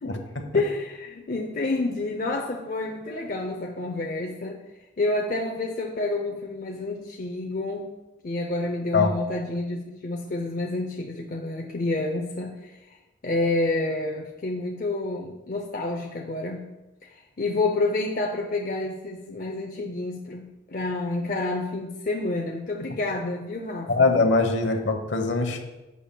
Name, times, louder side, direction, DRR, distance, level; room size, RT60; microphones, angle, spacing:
voice 1, 0.0-0.5 8.9-9.1 23.9-25.6, left 3 dB, 65° left, 5 dB, 1.0 m, -22 dB
voice 2, 0.5-4.6 5.0-7.9 8.2-13.0 13.2-16.7 17.0-23.9, left 2 dB, 45° left, 1 dB, 0.6 m, -29 dB
11.0 x 7.4 x 2.2 m, 1.1 s
head